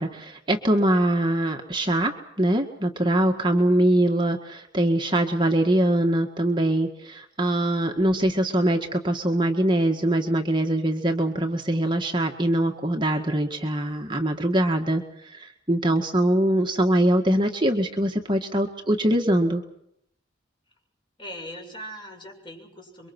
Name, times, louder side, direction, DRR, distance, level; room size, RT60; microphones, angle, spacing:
voice 1, 0.0-19.6, right 1 dB, 25° right, 2 dB, 1.9 m, -23 dB
voice 2, 21.2-23.1, equal, 25° left, 1 dB, 7.3 m, -40 dB
28.5 x 24.0 x 6.2 m, 0.73 s
head